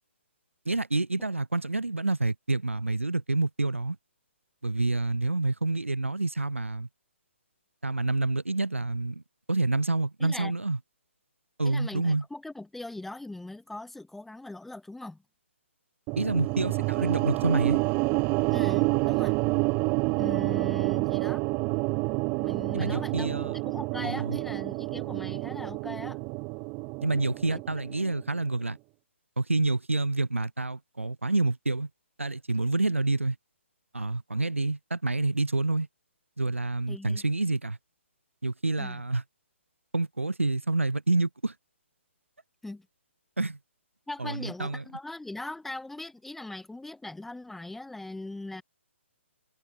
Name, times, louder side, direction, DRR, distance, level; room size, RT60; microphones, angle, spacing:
voice 1, 0.7-4.0 4.6-6.9 7.8-9.2 9.5-10.8 11.6-12.2 16.2-17.8 22.7-23.5 24.0-24.4 27.0-28.8 29.4-31.9 32.2-33.4 33.9-35.9 36.4-37.8 38.4-39.2 39.9-41.5 43.4-43.6 44.2-44.8, right 2 dB, 80° right, 2.6 m, -28 dB
voice 2, 10.2-10.5 11.6-15.2 18.5-19.3 20.2-21.4 22.4-23.3 23.6-26.2 27.5-27.6 36.9-37.2 38.8-39.0 42.6-42.9 44.1-48.6, left 2 dB, 5° left, 1.1 m, -40 dB
sound 1, 16.1-28.3, right 32 dB, 25° right, 0.8 m, -28 dB
figure-of-eight pair, 135°, 7 cm